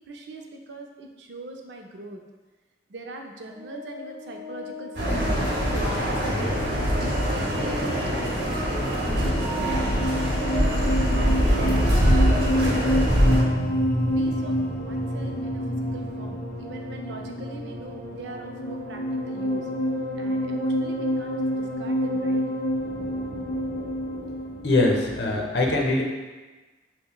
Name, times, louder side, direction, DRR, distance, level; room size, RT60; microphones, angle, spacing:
voice 1, 0.1-2.2 2.9-5.5 5.9-9.8 10.2-11.7 12.1-13.6 14.2-19.7 20.2-22.4, right 2 dB, 85° right, 2 dB, 0.4 m, -41 dB
Organ, 3.5-14.2, left 4 dB, 10° right, 1.1 m, -39 dB
sound 1, 4.9-13.4, equal, 65° right, 0.8 m, -23 dB
sound 2, 6.3-25.2, equal, 15° left, 1.0 m, -28 dB
voice 2, 24.6-26.0, left 2 dB, 80° left, 0 dB, 0.6 m, -22 dB
5.5 x 2.1 x 2.3 m, 1.2 s
head